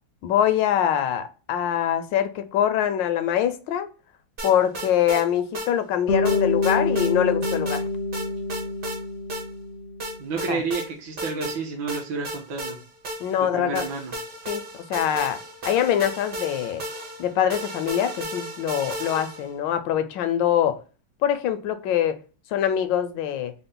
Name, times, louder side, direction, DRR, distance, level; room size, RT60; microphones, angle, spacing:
voice 1, 0.2-3.9 4.4-7.8 10.5-10.6 13.2-13.8 14.5-15.4 15.6-16.8 17.2-20.8 21.2-22.2 22.5-23.5, left 10 dB, 80° left, 10 dB, 1.2 m, -24 dB
sound 1, 4.4-5.2 5.5-5.7 6.2-7.1 7.4-7.8 8.1-9.0 9.3-9.4 10.0-10.9 11.2-11.6 11.9-13.4 13.7-19.5, right 1 dB, 45° right, 0.7 m, -34 dB
Bass guitar, 6.1-10.3, left 3 dB, 60° left, 0.7 m, -26 dB
voice 2, 10.2-12.8 13.4-14.1, right 4 dB, 70° right, 0 dB, 1.4 m, -30 dB
4.2 x 2.0 x 3.7 m, 0.35 s
omnidirectional pair, 2.0 m